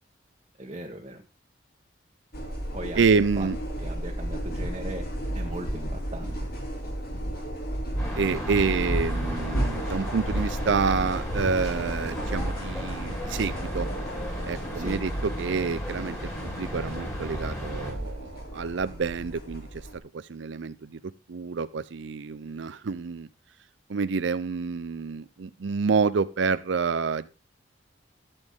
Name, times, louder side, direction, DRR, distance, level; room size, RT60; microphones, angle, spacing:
voice 1, 0.6-1.2 2.7-3.5 3.8-5.0 5.3-6.4 14.7-15.0, right 1 dB, 30° right, -1 dB, 1.3 m, -38 dB
sound 1, 2.3-20.0, right 1 dB, 50° left, 3.1 m, -32 dB
voice 2, 3.0-3.6 8.2-13.9 14.4-19.9 20.1-23.3 23.9-27.3, right 5 dB, 75° right, 14 dB, 0.5 m, -28 dB
sound 2, 8.0-17.9, equal, 15° left, 3.7 m, -37 dB
14.0 x 7.1 x 3.7 m, 0.32 s
head